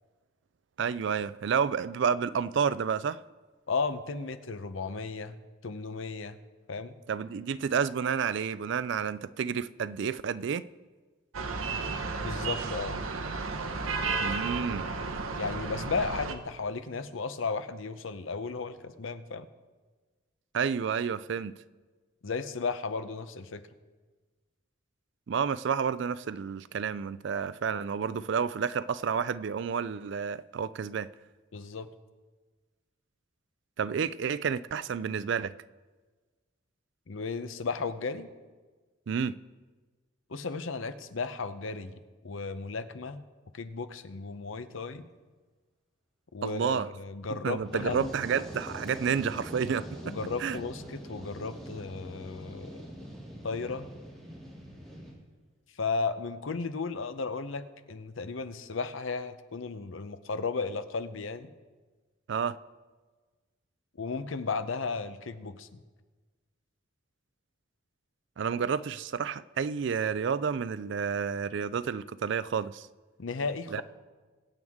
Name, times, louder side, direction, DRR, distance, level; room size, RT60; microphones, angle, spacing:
voice 1, 0.8-3.2 7.1-10.7 14.2-14.9 20.5-21.5 25.3-31.1 33.8-35.5 39.1-39.4 46.4-46.9 47.4-50.1 50.4-50.6 62.3-62.6 68.4-72.9 73.7-73.8, right 6 dB, 60° right, 0.3 m, -30 dB
voice 2, 3.7-5.4 5.6-6.4 6.7-6.9 12.2-13.0 15.4-19.5 22.2-23.6 31.5-31.9 37.1-38.3 40.3-43.2 43.5-45.0 46.3-48.1 50.0-52.9 53.4-53.9 55.8-61.5 64.0-65.8 73.2-73.8, left 4 dB, 70° left, 0.7 m, -34 dB
sound 1, 11.3-16.3, right 4 dB, 80° right, 0.9 m, -33 dB
Fire, 47.5-55.1, equal, ahead, 2.5 m, -43 dB
22.5 x 7.9 x 3.6 m
head